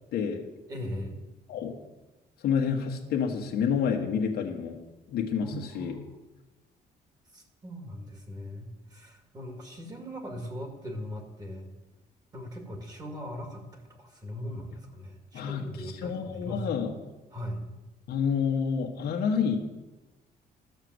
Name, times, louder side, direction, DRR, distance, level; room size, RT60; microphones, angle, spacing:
voice 1, 0.1-0.4 1.5-1.7 2.4-4.8 5.1-5.9 15.3-16.9 18.1-19.6, left 6 dB, 80° left, 1 dB, 1.4 m, -29 dB
voice 2, 0.7-1.1 5.4-6.2 7.3-11.7 12.3-16.6 17.3-17.6, equal, 25° right, 3 dB, 2.1 m, -39 dB
12.5 x 6.7 x 7.9 m, 1.1 s
cardioid pair, 160°, 16 cm